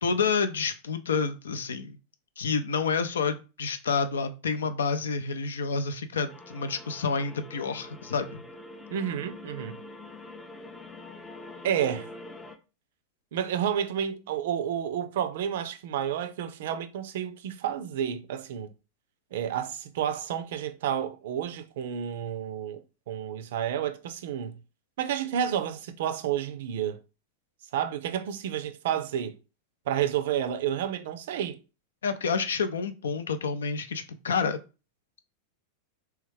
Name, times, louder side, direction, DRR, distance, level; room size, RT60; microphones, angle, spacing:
voice 1, 0.0-2.0 2.4-8.4 32.0-34.6, left 5 dB, 65° left, 0.5 m, -29 dB
sound 1, 6.3-12.6, left 2 dB, 10° left, 0.5 m, -45 dB
voice 2, 8.9-9.8 11.6-12.1 13.3-18.7 19.3-24.6 25.0-27.0 27.7-29.4 29.9-31.6, right 9 dB, 55° right, 0.4 m, -30 dB
3.4 x 3.2 x 3.2 m
figure-of-eight pair, 90°, 0 cm